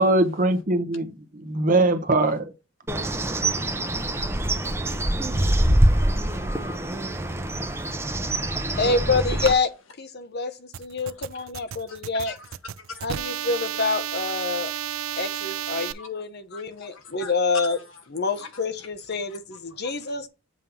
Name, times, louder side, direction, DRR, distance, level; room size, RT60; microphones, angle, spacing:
voice 1, 0.0-2.5, right 2 dB, 45° right, 1.2 m, -21 dB
Bird, 2.9-9.5, right 1 dB, 15° right, 0.9 m, -24 dB
voice 2, 4.2-8.8 11.0-11.2 11.9-12.0 12.2-13.1 13.4-13.5 16.0-16.1 16.5-17.3 17.7-18.0 18.4-18.6 19.7-20.0, left 5 dB, 85° left, 1.5 m, -47 dB
voice 3, 8.8-9.7 10.0-12.3 13.0-14.7 15.2-17.8 18.1-20.3, left 4 dB, 55° left, 1.0 m, -27 dB
sound 1, 10.7-15.9, right 10 dB, 85° right, 0.4 m, -32 dB
7.4 x 3.2 x 5.6 m
head